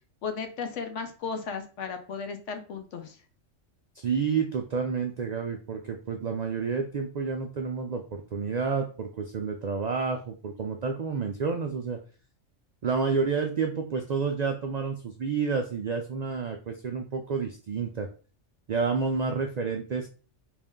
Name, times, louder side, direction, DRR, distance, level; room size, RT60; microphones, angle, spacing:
voice 1, 0.2-3.2, left 5 dB, 75° left, 7 dB, 1.0 m, -35 dB
voice 2, 4.0-12.0 12.8-18.1 18.7-20.1, right 5 dB, 90° right, 4 dB, 0.3 m, -29 dB
3.3 x 2.6 x 3.5 m, 0.37 s
omnidirectional pair, 1.3 m